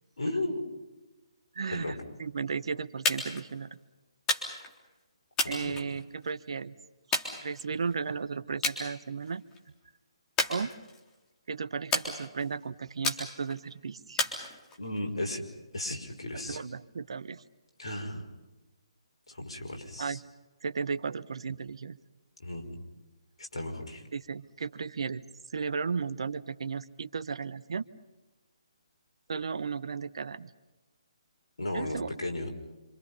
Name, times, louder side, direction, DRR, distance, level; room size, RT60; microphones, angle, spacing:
voice 1, 0.2-0.6 1.7-2.0 5.4-5.8 14.8-15.4 15.7-16.6 17.8-18.2 19.3-20.2 22.4-22.8 23.4-24.0 31.6-32.5, left 1 dB, 75° left, 2 dB, 5.5 m, -35 dB
voice 2, 1.5-3.8 5.5-6.7 7.4-9.4 10.5-10.7 11.5-14.2 16.5-17.4 20.0-20.2 20.6-22.0 24.1-25.2 25.5-27.8 29.3-30.5 31.7-32.1, right 5 dB, 65° right, 15 dB, 1.2 m, -35 dB
sound 1, 3.1-3.5 4.3-4.8 5.4-6.3 7.1-7.9 8.6-8.8 9.2-9.6 10.4-11.2 11.9-12.5 13.0-13.6 14.2-15.0, left 2 dB, 15° left, 3.6 m, -32 dB
27.0 x 26.5 x 5.6 m, 1.1 s
figure-of-eight pair, 145°, 3 cm